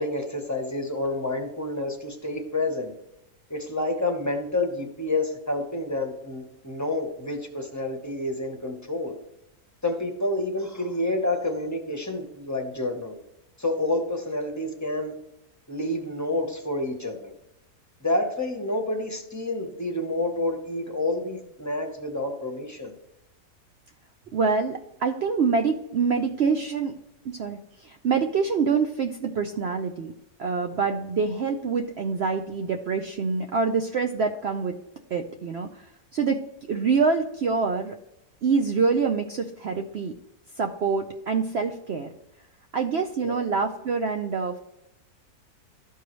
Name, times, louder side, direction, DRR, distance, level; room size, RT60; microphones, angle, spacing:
voice 1, 0.0-2.9 3.5-9.1 9.8-13.2 13.6-15.1 15.7-17.3 18.0-22.9 43.2-43.3, left 2 dB, 15° left, 3 dB, 0.7 m, -29 dB
voice 2, 24.3-27.0 27.2-30.1 30.4-34.8 35.1-36.4 36.7-38.0 38.4-40.1 40.6-42.1 42.7-44.6, right 5 dB, 75° right, 5 dB, 0.6 m, -26 dB
13.0 x 4.6 x 3.1 m, 0.87 s
omnidirectional pair, 1.7 m